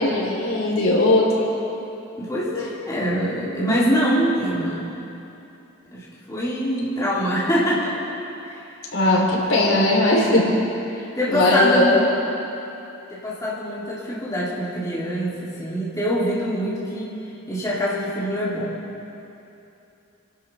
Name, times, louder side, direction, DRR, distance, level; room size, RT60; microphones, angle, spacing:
voice 1, 0.0-1.6 8.9-10.4 11.3-11.9, left 1 dB, 75° left, -4 dB, 3.5 m, -19 dB
voice 2, 2.2-4.9 5.9-8.0 9.7-9.9 11.0-12.1 13.1-17.2 17.5-18.7, equal, 15° left, -9 dB, 3.0 m, -24 dB
27.5 x 12.0 x 3.5 m, 2.9 s
head